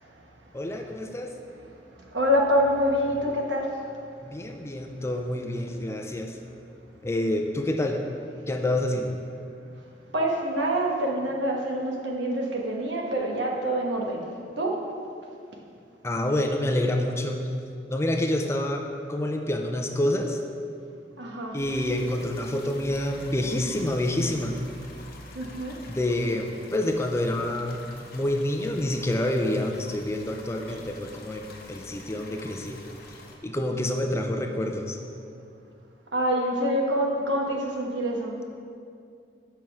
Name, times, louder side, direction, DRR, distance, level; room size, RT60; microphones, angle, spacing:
voice 1, 0.5-1.3 4.2-6.4 7.0-8.0 8.5-9.2 16.0-17.4 17.9-18.8 19.1-20.4 21.5-24.6 25.9-27.8 28.1-32.8 33.4-35.0, left 1 dB, 15° left, 3 dB, 0.4 m, -27 dB
voice 2, 2.1-3.8 10.1-14.3 14.6-14.8 21.2-21.6 25.3-25.8 36.1-38.5, equal, 80° right, 0 dB, 1.1 m, -26 dB
sound 1, 21.6-33.4, left 2 dB, 55° left, 0.8 m, -46 dB
7.3 x 5.8 x 4.7 m, 2.4 s
head